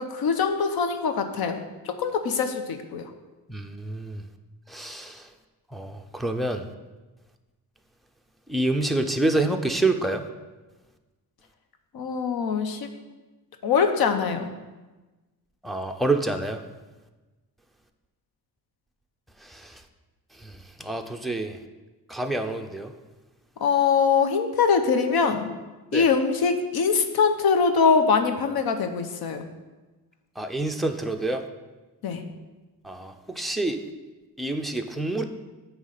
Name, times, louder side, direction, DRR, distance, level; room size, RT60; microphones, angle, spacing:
voice 1, 0.0-1.6 1.8-3.1 11.9-12.9 13.6-14.5 23.6-25.5 25.9-29.4 32.0-32.2, left 5 dB, 75° left, 7 dB, 0.9 m, -23 dB
voice 2, 3.5-4.2 4.7-5.2 5.7-6.6 8.5-10.2 15.6-16.6 19.5-19.7 20.8-21.6 22.1-22.9 25.9-26.0 30.4-31.4 32.8-33.8 34.4-35.2, right 2 dB, ahead, 4 dB, 0.4 m, -27 dB
9.4 x 3.2 x 6.5 m, 1.2 s
cardioid pair, 140°, 37 cm